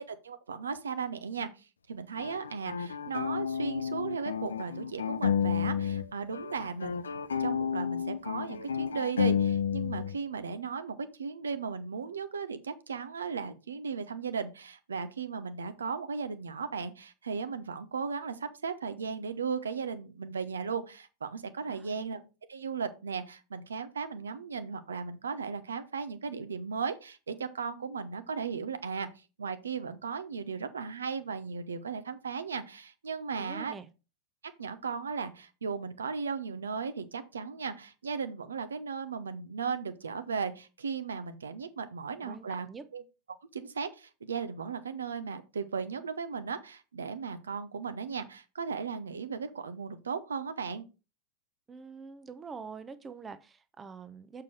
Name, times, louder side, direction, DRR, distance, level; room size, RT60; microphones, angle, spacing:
voice 1, 0.0-7.1 7.4-22.2 22.5-29.1 29.4-33.7 34.6-42.7 42.9-43.0 43.5-50.8, right 5 dB, 70° right, 0.8 m, -36 dB
sound 1, 2.2-6.1 6.3-10.1, left 7 dB, 70° left, 0.5 m, -31 dB
voice 2, 21.7-22.1 33.4-33.9 42.2-42.8 51.7-54.4, right 5 dB, 15° right, 0.7 m, -45 dB
6.9 x 4.7 x 4.9 m
figure-of-eight pair, 90°, 0 cm